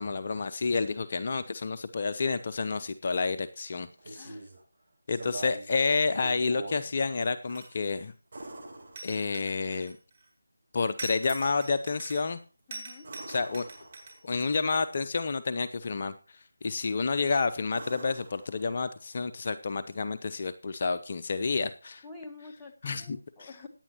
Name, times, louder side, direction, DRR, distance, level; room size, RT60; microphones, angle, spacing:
voice 1, 0.0-4.3 5.1-8.1 9.0-10.0 10.7-12.4 13.3-13.7 14.2-22.0 22.8-23.5, left 4 dB, 40° left, 10 dB, 0.6 m, -30 dB
sound 1, 3.9-4.6 5.1-5.7 6.1-6.8 8.3-9.6 13.0-14.3 16.8-17.2 17.7-19.1 21.2-21.3, right 2 dB, 50° right, 7.3 m, -44 dB
voice 2, 4.1-4.4 12.7-13.1 22.0-23.7, left 3 dB, 5° left, 0 dB, 1.3 m, -47 dB
sound 2, 7.4-8.0 9.0-10.2 11.0-12.4 12.7-14.8, right 3 dB, 30° right, 3.9 m, -44 dB
16.0 x 9.6 x 3.0 m, 0.36 s
figure-of-eight pair, 160°, 0 cm